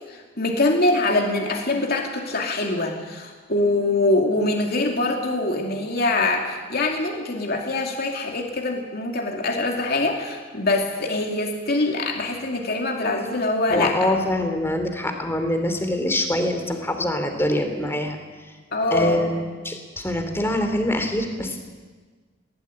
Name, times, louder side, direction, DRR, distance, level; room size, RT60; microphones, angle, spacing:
voice 1, 0.1-14.1 18.7-19.3, left 2 dB, 50° left, 1 dB, 2.6 m, -24 dB
voice 2, 13.7-18.2 18.9-19.4 19.6-21.6, left 1 dB, 10° left, 6 dB, 2.8 m, -24 dB
20.5 x 16.0 x 9.8 m, 1.4 s
head